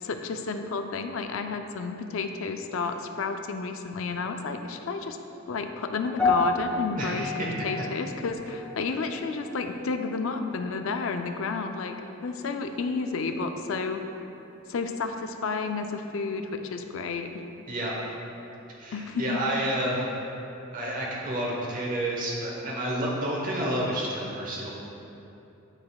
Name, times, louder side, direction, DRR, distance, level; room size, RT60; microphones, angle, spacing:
voice 1, 0.0-5.2 5.5-12.0 12.2-14.0 14.7-17.3 18.9-19.4, left 4 dB, 65° left, 6 dB, 0.4 m, -31 dB
sound 1, 6.2-10.6 10.8-11.2 11.9-12.0, left 3 dB, 10° left, 1.2 m, -32 dB
voice 2, 6.9-7.5 17.7-17.9 18.8-20.1 20.7-24.7, right 1 dB, 40° right, -3 dB, 1.1 m, -30 dB
11.5 x 4.0 x 2.3 m, 2.9 s
head